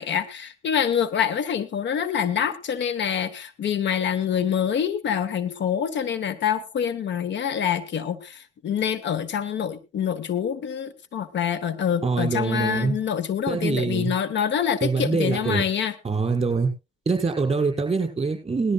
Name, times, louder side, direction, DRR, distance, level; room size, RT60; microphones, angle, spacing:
voice 1, 0.0-16.0, left 8 dB, 65° left, 15 dB, 1.2 m, -26 dB
voice 2, 12.0-13.0 13.5-14.1 14.8-15.6 16.0-16.7 17.1-18.7, right 4 dB, 25° right, 2 dB, 5.8 m, -24 dB
19.5 x 13.0 x 2.4 m, 0.26 s
cardioid pair, 90°, 20 cm